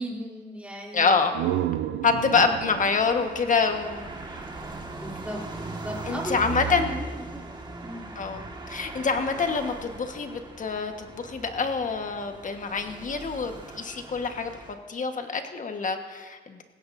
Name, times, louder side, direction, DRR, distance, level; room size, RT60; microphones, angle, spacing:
voice 1, 0.0-1.2 2.3-2.5 5.0-7.4 7.8-8.1, equal, 5° right, -3 dB, 3.2 m, -36 dB
voice 2, 0.9-1.4 2.0-4.1 6.1-6.9 8.2-8.4 8.7-14.5 14.9-16.6, left 5 dB, 40° left, 6 dB, 1.4 m, -26 dB
sound 1, 1.0-4.7, right 12 dB, 85° right, 0.5 m, -32 dB
sound 2, 2.2-14.7, right 3 dB, 20° right, 1.8 m, -39 dB
19.0 x 16.0 x 2.7 m, 1.4 s
cardioid pair, 90°, 20 cm